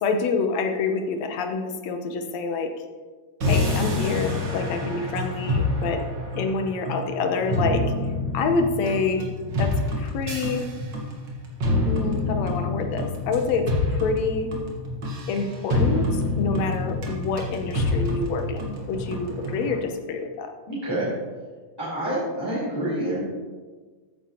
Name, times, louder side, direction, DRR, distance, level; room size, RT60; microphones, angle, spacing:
voice 1, 0.0-2.7 3.5-6.0 6.4-7.8 8.3-9.2 9.6-9.7 10.0-10.7 11.9-14.5 15.3-20.5, left 4 dB, 70° left, 5 dB, 2.1 m, -27 dB
sound 1, 3.4-19.8, left 2 dB, 45° right, 1.9 m, -27 dB
voice 2, 20.7-21.1 21.8-23.2, right 1 dB, 10° left, -9 dB, 3.3 m, -27 dB
14.0 x 9.6 x 3.0 m, 1.4 s
omnidirectional pair, 3.3 m